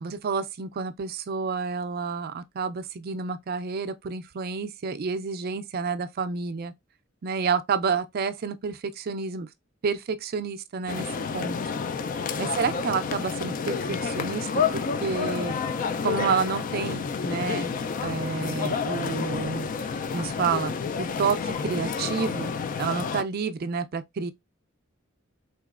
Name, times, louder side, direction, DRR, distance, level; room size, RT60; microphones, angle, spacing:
voice 1, 0.0-6.7 7.2-9.5 9.8-11.1 11.3-11.6 12.4-15.6 16.0-19.7 20.1-20.7 21.0-24.3, right 5 dB, 50° right, 0.4 m, -29 dB
sound 1, 10.9-23.2, left 5 dB, 40° left, 0.3 m, -29 dB
3.9 x 2.9 x 2.4 m
head